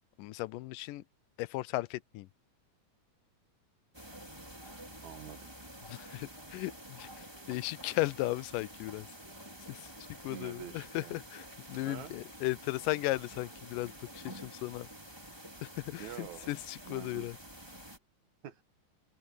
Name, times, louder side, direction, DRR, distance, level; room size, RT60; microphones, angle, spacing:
voice 1, 0.2-1.0 1.4-2.3 5.9-9.1 9.7-9.9 10.2-14.9 15.6-17.4, left 18 dB, 85° left, 2.2 m, -36 dB
sound 1, 3.9-18.0, right 1 dB, 5° right, 4.4 m, -49 dB
voice 2, 5.0-5.5 10.3-11.2 11.8-12.1 16.0-16.5 16.8-17.3 18.4-18.6, right 10 dB, 70° right, 2.3 m, -46 dB
open air
omnidirectional pair, 3.8 m